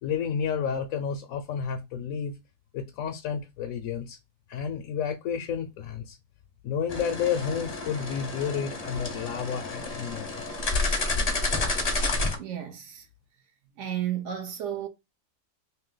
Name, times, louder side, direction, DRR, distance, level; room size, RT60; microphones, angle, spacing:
voice 1, 0.0-2.4 2.7-4.2 4.5-6.2 6.6-10.4 10.9-11.0, left 7 dB, 70° left, 0.9 m, -31 dB
sound 1, 6.9-12.4, left 2 dB, 35° left, 0.6 m, -30 dB
voice 2, 12.3-13.1 13.8-14.9, right 10 dB, 65° right, 0.8 m, -33 dB
3.2 x 2.8 x 3.8 m
omnidirectional pair, 1.7 m